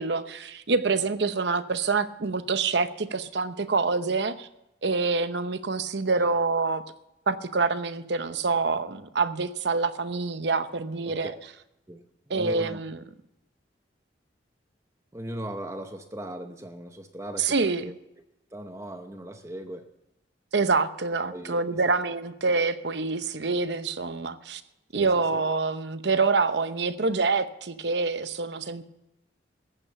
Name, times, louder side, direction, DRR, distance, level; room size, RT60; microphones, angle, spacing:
voice 1, 0.0-4.5 4.8-6.8 7.3-11.3 12.3-13.0 17.4-17.8 20.5-24.6 24.9-28.8, right 4 dB, 65° right, 12 dB, 0.8 m, -26 dB
voice 2, 11.9-12.8 15.1-17.9 18.5-19.9 21.3-21.9 24.9-25.4, right 1 dB, 15° right, 7 dB, 0.8 m, -39 dB
15.0 x 8.9 x 7.0 m, 0.89 s
head